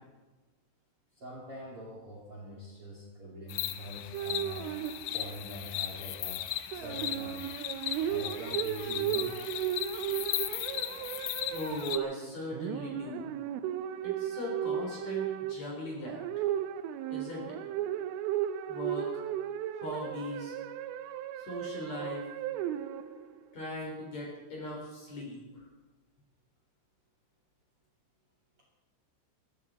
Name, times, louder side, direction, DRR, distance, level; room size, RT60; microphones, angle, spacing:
voice 1, 1.1-4.7 5.1-6.4 6.7-7.5 8.1-9.4 11.5-11.6, equal, 35° right, -3 dB, 2.9 m, -44 dB
sound 1, 3.5-12.0, left 14 dB, 80° left, 3.3 m, -37 dB
sound 2, 4.1-5.5 6.7-23.4, right 11 dB, 90° right, 3.3 m, -35 dB
voice 2, 11.5-13.3 14.0-16.5 17.1-17.6 18.7-19.2 19.7-20.6 21.4-22.3 23.5-25.6, left 1 dB, 40° left, -2 dB, 4.6 m, -39 dB
23.0 x 13.0 x 4.2 m, 1.2 s
omnidirectional pair, 5.6 m